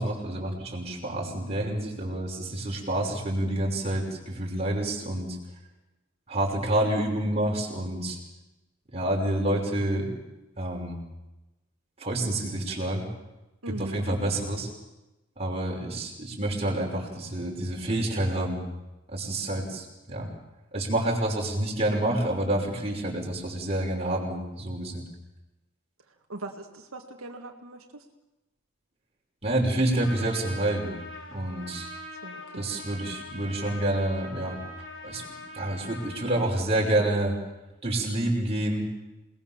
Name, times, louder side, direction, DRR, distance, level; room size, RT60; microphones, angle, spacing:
voice 1, 0.0-5.4 6.3-8.2 8.9-10.1 10.6-11.0 12.0-13.1 13.8-14.7 15.4-18.6 19.1-20.3 20.7-25.0 29.4-31.0 31.3-31.9 32.6-34.6 35.0-35.2 35.5-37.4 37.8-38.9, right 1 dB, 30° right, -1 dB, 5.7 m, -28 dB
voice 2, 13.6-14.0 26.1-28.0 32.2-32.7, right 2 dB, 80° right, 2 dB, 2.0 m, -40 dB
Trumpet, 30.0-36.5, left 1 dB, 60° left, 4.4 m, -43 dB
28.0 x 20.0 x 7.3 m, 1.0 s
head